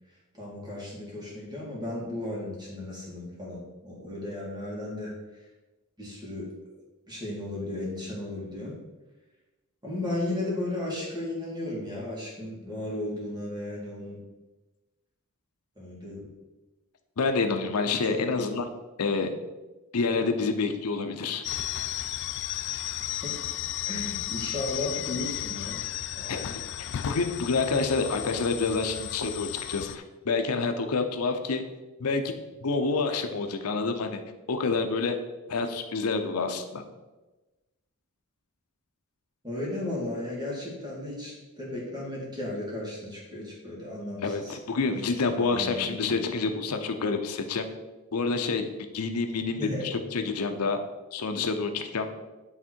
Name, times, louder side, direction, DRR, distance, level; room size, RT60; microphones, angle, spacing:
voice 1, 0.3-5.1 6.0-6.5 7.1-8.8 9.8-14.2 15.8-16.3 18.0-18.5 23.2-23.4 23.9-25.8 26.1-26.6 39.4-44.6 45.4-46.2 49.6-49.8, left 1 dB, 20° right, -5 dB, 2.1 m, -35 dB
voice 2, 17.2-18.7 19.0-19.3 19.9-21.4 26.3-26.4 27.1-31.6 32.0-32.2 32.6-34.2 34.5-35.2 35.5-36.8 44.2-47.7 48.1-48.7 48.9-50.8 51.1-52.1, left 4 dB, 90° left, 6 dB, 0.7 m, -28 dB
sound 1, 21.4-30.0, left 12 dB, 55° left, 0.3 m, -34 dB
8.6 x 3.6 x 4.5 m, 1.1 s
head